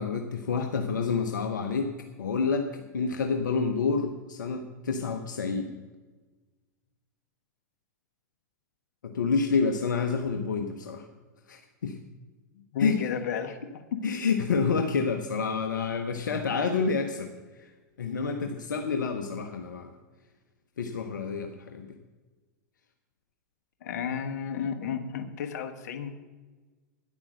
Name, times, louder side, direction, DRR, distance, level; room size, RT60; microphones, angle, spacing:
voice 1, 0.0-1.9 2.2-5.7 9.0-11.1 11.5-12.0 12.8-13.0 14.0-17.3 18.0-19.9 20.8-22.0, left 5 dB, 85° left, 6 dB, 0.9 m, -28 dB
voice 2, 12.5-13.6 13.9-14.0 23.8-26.1, left 7 dB, 65° left, 6 dB, 1.3 m, -32 dB
10.5 x 8.5 x 6.5 m, 1.3 s
hypercardioid pair, 100°, 10 cm